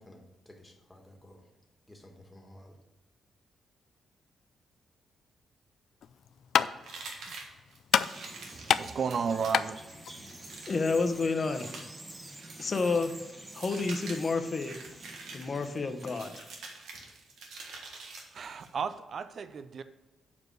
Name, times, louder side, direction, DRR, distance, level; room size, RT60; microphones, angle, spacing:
voice 1, 0.0-1.4 1.9-2.8, left 1 dB, 10° left, 1 dB, 1.6 m, -53 dB
sound 1, 6.0-11.3, left 8 dB, 70° left, 0.3 m, -31 dB
sound 2, 6.8-18.7, right 3 dB, 85° right, 1.5 m, -47 dB
Bird vocalization bird call bird song, 7.9-16.8, right 1 dB, 20° right, 1.2 m, -49 dB
voice 2, 8.5-9.8 18.3-19.8, right 6 dB, 55° right, 12 dB, 0.5 m, -33 dB
voice 3, 10.7-11.8 12.6-13.2 13.5-14.8 15.3-16.4, left 4 dB, 40° left, 8 dB, 0.9 m, -30 dB
7.1 x 4.8 x 6.3 m, 1.2 s
cardioid pair, 95°, 0 cm